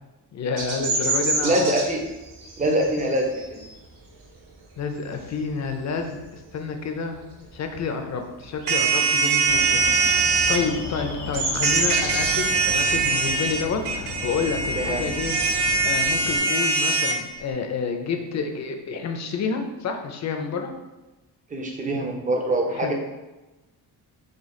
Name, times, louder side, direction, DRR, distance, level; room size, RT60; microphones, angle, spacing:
voice 1, 0.3-1.7 4.8-7.2 7.5-15.4 15.8-20.7 22.7-22.9, left 5 dB, 45° left, 5 dB, 0.5 m, -29 dB
Bird vocalization bird call bird song, 0.6-5.8 6.2-6.5 6.8-8.1 8.3-15.7, right 2 dB, 70° right, 1.0 m, -30 dB
voice 2, 1.4-2.0 2.6-3.6 9.7-10.0 14.7-15.1 21.5-22.9, right 1 dB, 20° right, 2 dB, 0.5 m, -24 dB
sound 1, 8.7-10.6 11.6-17.2, right 4 dB, 90° right, 0.6 m, -22 dB
Alarm, 9.5-16.4, left 4 dB, 80° left, 0.7 m, -35 dB
5.0 x 2.3 x 3.6 m, 1.1 s
wide cardioid pair, 155°, 40 cm